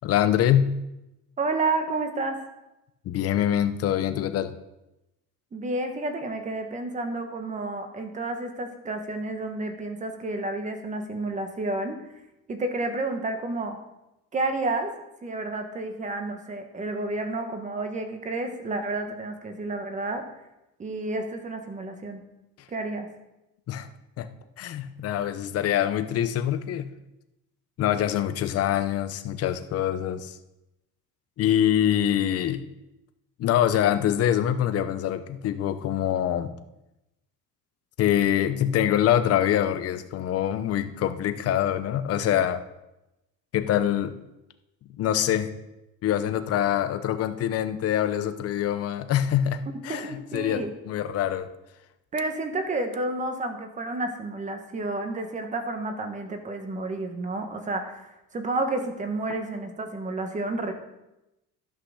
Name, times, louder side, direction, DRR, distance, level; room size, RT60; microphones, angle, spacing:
voice 1, 0.0-0.7 3.0-4.5 23.7-23.9 24.2-24.3 24.6-26.9 27.8-30.4 31.4-32.6 33.4-36.5 38.0-42.6 43.5-44.2 45.0-45.5 46.0-51.5, left 10 dB, 45° left, 10 dB, 0.8 m, -24 dB
voice 2, 1.4-2.4 5.5-12.2 12.5-13.8 14.3-14.9 15.2-20.3 20.8-22.2 22.7-23.1 49.9-50.7 52.1-60.7, right 2 dB, 20° right, 6 dB, 1.2 m, -30 dB
11.5 x 5.8 x 6.4 m, 0.92 s
cardioid pair, 160°, 33 cm